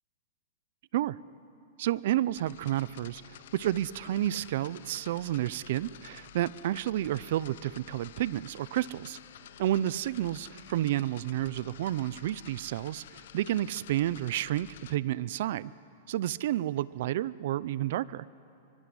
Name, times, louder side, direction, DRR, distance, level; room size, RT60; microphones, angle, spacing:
voice 1, 1.8-9.2 9.6-15.7 16.1-18.3, right 13 dB, 60° right, 20 dB, 0.6 m, -30 dB
sound 1, 2.3-15.0, left 11 dB, 65° left, 0.8 m, -51 dB
24.0 x 24.0 x 9.8 m, 2.9 s
hypercardioid pair, 150°, 0 cm